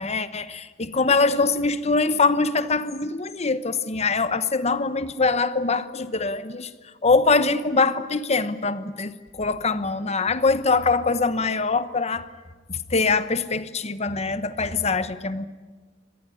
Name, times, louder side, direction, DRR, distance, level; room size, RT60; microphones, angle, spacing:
voice 1, 0.0-6.7 7.0-12.3 12.7-15.5, left 4 dB, 35° left, 1.1 m, -23 dB
24.5 x 19.5 x 9.9 m
head